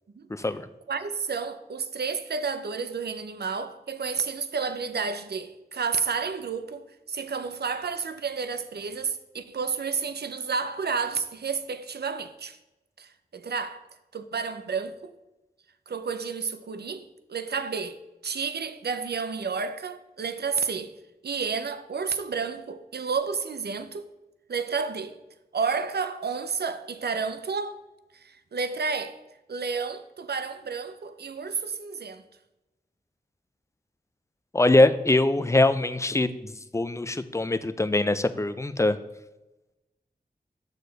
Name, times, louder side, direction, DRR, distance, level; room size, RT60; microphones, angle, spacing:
voice 1, 0.3-0.7 34.5-39.0, left 2 dB, 15° left, 0.4 m, -23 dB
voice 2, 0.9-12.6 13.0-13.9 14.1-15.1 15.9-20.9 21.2-24.1 24.5-25.2 25.5-27.8 28.1-29.2 29.5-32.2, right 5 dB, 75° right, 0.5 m, -31 dB
6.6 x 6.5 x 3.9 m
wide cardioid pair, 55°, 17 cm